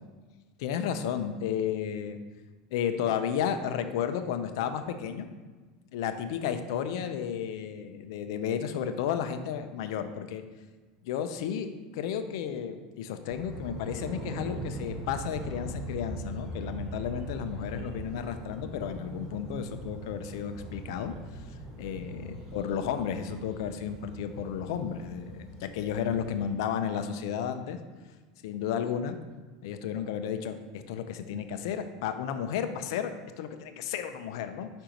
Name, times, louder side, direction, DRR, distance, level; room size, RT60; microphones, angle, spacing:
voice 1, 0.6-2.2 2.7-5.3 5.9-10.4 11.0-11.7 11.9-21.1 21.8-27.8 28.4-29.2 29.6-34.7, left 8 dB, 75° left, 9 dB, 0.6 m, -33 dB
sound 1, 13.3-26.5, right 1 dB, 30° right, 1.4 m, -41 dB
5.1 x 4.5 x 5.1 m, 1.3 s
supercardioid pair, 140°, 3 cm